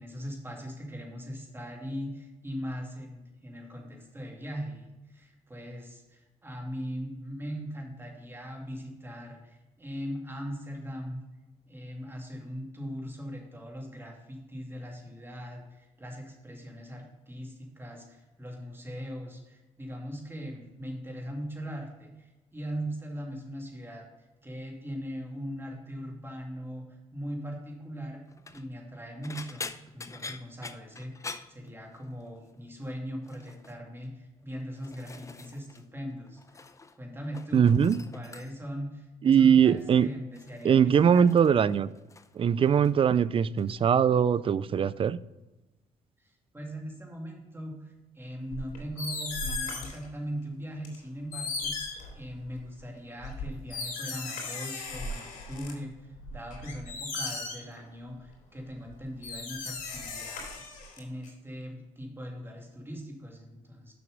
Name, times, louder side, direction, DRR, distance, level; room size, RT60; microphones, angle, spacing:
voice 1, 0.0-11.2 11.7-24.0 24.4-29.6 29.9-36.6 36.9-37.7 38.1-41.3 46.2-60.5 61.0-63.9, equal, 15° right, 2.4 m, -40 dB
sound 1, 28.3-28.7 29.2-32.3 32.5-32.9 33.2-33.8 34.4-35.9 36.1-37.0 37.2-38.8 39.6-39.9 40.3-42.4 42.7-43.2 43.6-43.8 45.1-45.2, left 4 dB, 20° left, 0.6 m, -45 dB
voice 2, 37.5-38.0 39.2-40.1 40.6-41.9 42.4-45.2, right 8 dB, 40° right, 0.4 m, -21 dB
sound 2, 48.5-50.1 50.9-51.0 51.3-52.6 53.2-55.7 56.2-57.8 58.9-59.0 59.2-61.3, left 3 dB, 80° left, 2.8 m, -36 dB
6.9 x 6.0 x 5.2 m
cardioid pair, 80°, 14 cm